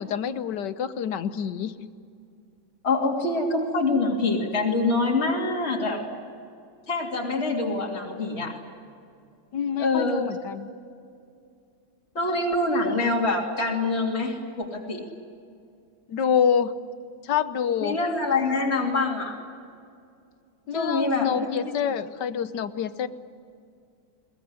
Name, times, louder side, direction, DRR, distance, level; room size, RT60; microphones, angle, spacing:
voice 1, 0.0-1.8 9.5-10.7 16.1-16.7 17.2-18.0 20.7-23.1, left 8 dB, 70° left, 13 dB, 1.5 m, -27 dB
voice 2, 2.8-6.0 6.9-8.5 9.8-10.2 12.1-15.0 17.8-19.4 20.7-21.8, left 3 dB, 35° left, -2 dB, 3.2 m, -25 dB
22.0 x 20.0 x 9.8 m, 2.4 s
omnidirectional pair, 2.0 m